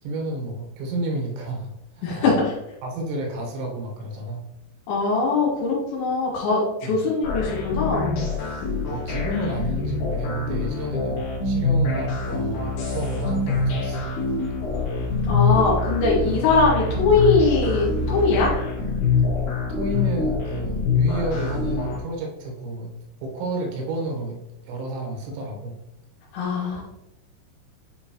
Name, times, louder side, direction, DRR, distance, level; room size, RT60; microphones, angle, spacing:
voice 1, 0.0-2.4 2.8-4.4 6.8-7.0 8.9-14.1 19.7-22.9 23.2-25.8, right 1 dB, 80° right, 1 dB, 3.6 m, -31 dB
voice 2, 2.0-2.5 4.9-8.3 8.6-8.7 15.3-18.5 26.3-26.8, left 4 dB, 80° left, -3 dB, 4.0 m, -21 dB
sound 1, 7.2-22.0, left 4 dB, 60° left, 3.8 m, -25 dB
sound 2, 12.5-18.5, right 3 dB, 40° right, 0.7 m, -32 dB
9.7 x 3.9 x 3.0 m, 0.90 s
omnidirectional pair, 5.4 m